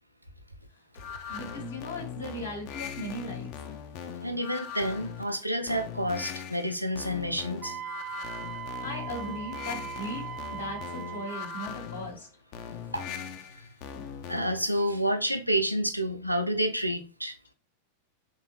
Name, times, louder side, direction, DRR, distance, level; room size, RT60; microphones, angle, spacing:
sound 1, 0.9-14.7, left 8 dB, 45° left, 0.4 m, -40 dB
voice 1, 1.3-3.5 8.8-12.3, equal, 75° left, 1.3 m, -38 dB
voice 2, 4.2-7.8 12.9-13.1 13.5-13.7 14.3-17.5, equal, 90° right, 0.5 m, -29 dB
Wind instrument woodwind instrument, 7.6-11.7, right 9 dB, 30° right, 0.5 m, -39 dB
3.4 x 2.7 x 2.9 m
figure-of-eight pair, 90°, 0 cm